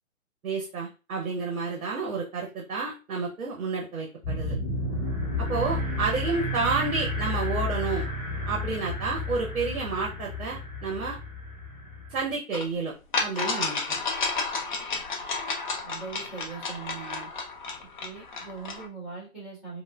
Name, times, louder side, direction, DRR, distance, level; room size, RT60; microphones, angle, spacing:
voice 1, 0.4-4.6 5.4-8.1 8.5-11.2 12.1-14.0, right 4 dB, 75° right, -1 dB, 0.8 m, -30 dB
sound 1, 4.2-12.3, left 1 dB, 15° left, 0.8 m, -31 dB
sound 2, 12.5-12.6 13.1-18.9, left 4 dB, 35° left, 0.4 m, -31 dB
voice 2, 15.8-17.3 18.0-19.8, right 5 dB, ahead, -7 dB, 1.3 m, -40 dB
3.1 x 2.1 x 2.2 m, 0.32 s
figure-of-eight pair, 130°, 42 cm